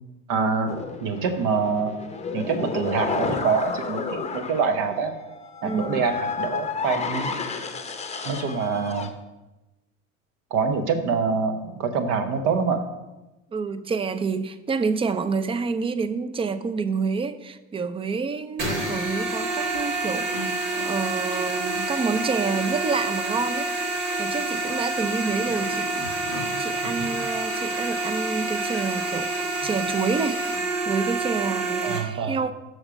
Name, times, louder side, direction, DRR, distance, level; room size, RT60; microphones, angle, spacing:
voice 1, 0.3-0.7 1.0-2.0 2.3-5.1 5.6-7.3 8.2-9.1 10.5-12.8 31.8-32.4, right 5 dB, 60° right, 7 dB, 1.1 m, -25 dB
sound 1, 0.7-9.1, left 4 dB, 15° left, 0.8 m, -31 dB
voice 2, 5.6-6.0 13.5-20.4 20.8-26.1 26.6-29.3 29.6-32.5, right 5 dB, 15° right, 12 dB, 0.4 m, -28 dB
sound 2, 18.6-32.0, right 2 dB, 80° right, 1.8 m, -28 dB
6.4 x 6.3 x 5.0 m, 1.0 s
hypercardioid pair, 85°, 38 cm